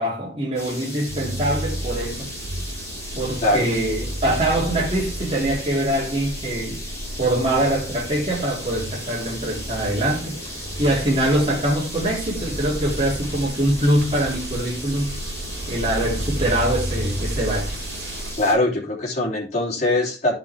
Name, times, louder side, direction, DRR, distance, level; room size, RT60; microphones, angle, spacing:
voice 1, 0.0-2.3 3.1-6.8 7.2-10.4 10.8-15.2 15.7-17.8, right 1 dB, 30° right, 3.1 m, -23 dB
sound 1, 0.5-18.5, left 1 dB, 15° left, 5.7 m, -36 dB
sound 2, 1.1-18.4, right 1 dB, 60° right, 2.8 m, -32 dB
voice 2, 18.4-20.3, left 2 dB, 40° left, 3.3 m, -21 dB
11.5 x 5.6 x 3.4 m
head